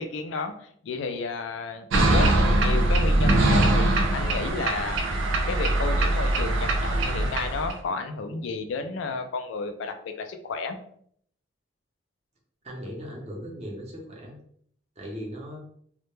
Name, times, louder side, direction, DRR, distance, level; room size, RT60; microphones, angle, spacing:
voice 1, 0.0-5.0 5.5-10.8, left 4 dB, 75° left, 6 dB, 0.3 m, -32 dB
sound 1, 1.9-7.7, right 1 dB, 80° right, 0.4 m, -22 dB
voice 2, 12.6-14.4 15.0-15.6, equal, 35° right, -1 dB, 0.6 m, -38 dB
2.1 x 2.1 x 3.0 m, 0.63 s
head